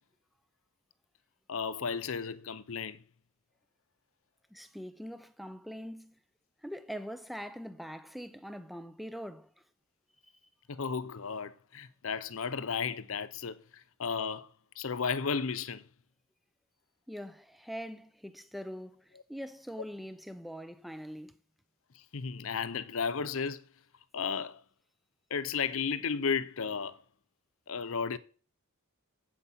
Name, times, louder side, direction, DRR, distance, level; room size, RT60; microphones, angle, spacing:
voice 1, 1.5-3.0 10.7-13.6 14.0-14.5 14.8-15.8 22.1-23.6 24.1-24.6 25.3-27.0 27.7-28.2, left 6 dB, 65° left, 0.7 m, -33 dB
voice 2, 4.5-6.2 6.6-9.5 10.2-10.3 17.1-21.4, equal, ahead, 0.6 m, -43 dB
8.4 x 8.4 x 5.8 m
head